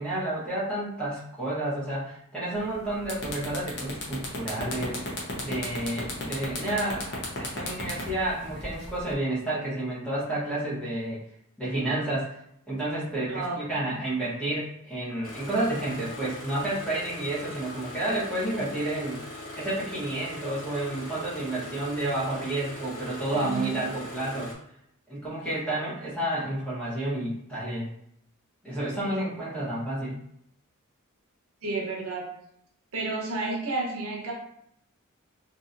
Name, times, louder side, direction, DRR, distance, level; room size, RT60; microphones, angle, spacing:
voice 1, 0.0-11.2 11.6-12.3 12.7-19.2 19.6-24.5 25.1-27.9 28.6-30.2, right 1 dB, 5° left, -9 dB, 1.2 m, -30 dB
sound 1, 2.6-2.7 3.0-9.1, left 2 dB, 55° left, 0.8 m, -34 dB
voice 2, 13.3-13.7 23.3-23.8 31.6-32.3 32.9-34.3, right 3 dB, 90° right, -2 dB, 0.8 m, -31 dB
Engine starting, 15.2-24.6, left 1 dB, 75° left, 0.9 m, -41 dB
2.9 x 2.7 x 2.5 m, 0.72 s
head